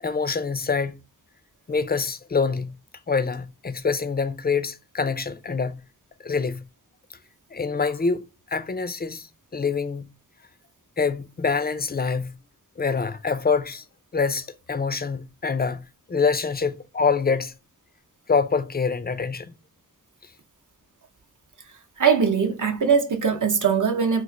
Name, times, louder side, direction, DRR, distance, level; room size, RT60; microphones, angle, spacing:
voice 1, 0.0-1.0 1.7-2.8 3.1-5.8 6.2-6.7 7.5-10.0 11.0-12.4 12.8-13.8 14.1-17.5 18.3-19.6, left 5 dB, 25° left, 0.4 m, -25 dB
voice 2, 22.0-24.2, right 6 dB, 55° right, 0.7 m, -21 dB
3.0 x 2.4 x 3.8 m
wide cardioid pair, 55°, 37 cm